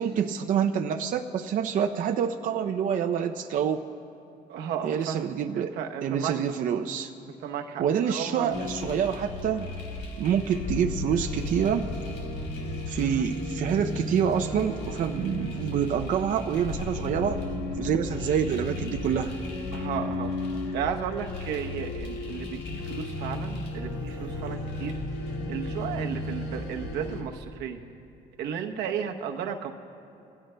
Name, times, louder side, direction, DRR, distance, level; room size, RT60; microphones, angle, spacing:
voice 1, 0.0-3.8 4.8-5.7 6.0-7.1 7.8-9.7 10.2-11.8 12.9-17.4 17.8-19.3, right 8 dB, 55° right, 4 dB, 0.5 m, -27 dB
voice 2, 4.5-5.2 5.5-6.4 7.4-8.5 13.0-13.3 19.7-20.3 20.7-25.0 25.5-27.9 28.4-29.7, right 8 dB, 80° right, 4 dB, 0.9 m, -34 dB
sound 1, 8.5-27.2, left 2 dB, 80° left, 1.9 m, -34 dB
22.0 x 16.0 x 2.2 m, 2.7 s
cardioid pair, 110°, 17 cm